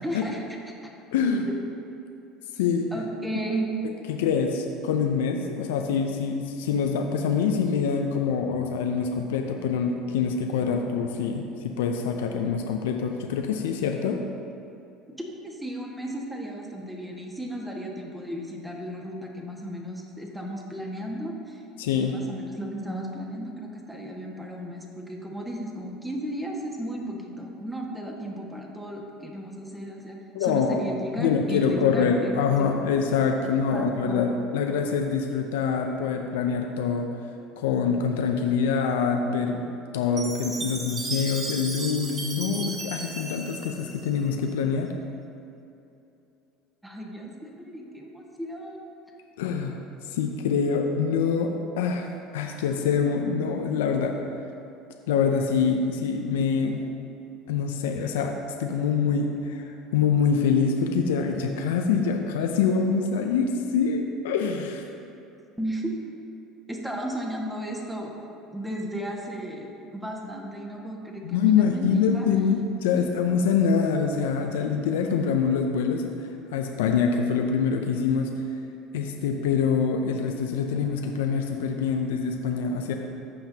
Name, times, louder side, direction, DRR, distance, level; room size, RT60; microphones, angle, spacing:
voice 1, 0.0-0.4 0.8-0.9 1.5-1.6 2.9-3.7 15.4-21.6 22.0-32.8 33.7-34.3 46.8-48.8 65.6-65.9 66.7-68.1 68.5-72.3 72.9-73.0, right 1 dB, 5° right, -1 dB, 1.6 m, -34 dB
voice 2, 1.1-1.5 2.5-2.9 4.1-14.2 21.8-22.2 30.3-30.8 31.2-37.1 37.6-39.6 39.9-44.9 49.4-52.1 52.3-54.2 55.1-56.8 57.5-64.9 71.2-76.1 76.5-78.3 78.9-82.9, left 6 dB, 85° left, 3 dB, 0.6 m, -25 dB
Chime, 40.2-44.5, right 3 dB, 40° right, 1.3 m, -35 dB
14.5 x 5.7 x 2.9 m, 2.7 s
hypercardioid pair, 80°, 0 cm